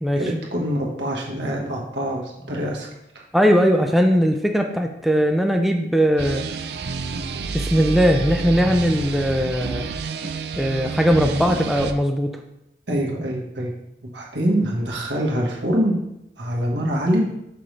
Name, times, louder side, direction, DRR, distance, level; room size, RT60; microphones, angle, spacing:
voice 1, 0.2-2.9 12.9-13.7 14.0-16.0 16.4-17.2, equal, 85° right, -2 dB, 1.4 m, -24 dB
voice 2, 3.3-6.4 7.5-9.9 10.6-12.3, equal, ahead, 3 dB, 0.4 m, -19 dB
sound 1, 6.2-11.9, right 4 dB, 65° right, 0.4 m, -29 dB
5.9 x 5.1 x 3.2 m, 0.84 s
head